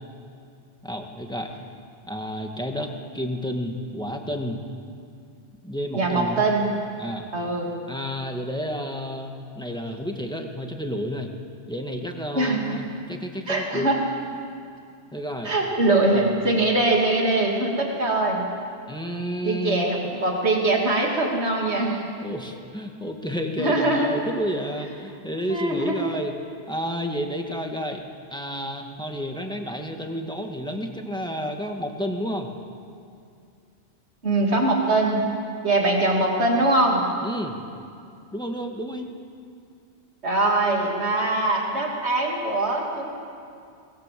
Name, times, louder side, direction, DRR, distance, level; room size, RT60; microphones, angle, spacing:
voice 1, 0.8-1.5 2.0-4.6 5.6-6.4 7.0-7.3 7.9-11.3 11.7-13.9 15.1-15.5 16.2-16.5 18.9-19.8 22.0-26.3 26.7-28.0 28.3-32.5 37.2-37.6 38.3-39.1, equal, 5° left, 3 dB, 2.0 m, -31 dB
voice 2, 5.9-6.7 7.3-7.7 12.3-12.8 13.5-14.0 15.4-18.4 19.4-22.0 23.6-24.1 25.5-26.0 34.2-35.3 35.6-37.0 40.2-43.1, right 2 dB, 70° right, -1 dB, 3.3 m, -22 dB
24.5 x 20.5 x 7.8 m, 2.4 s
omnidirectional pair, 1.2 m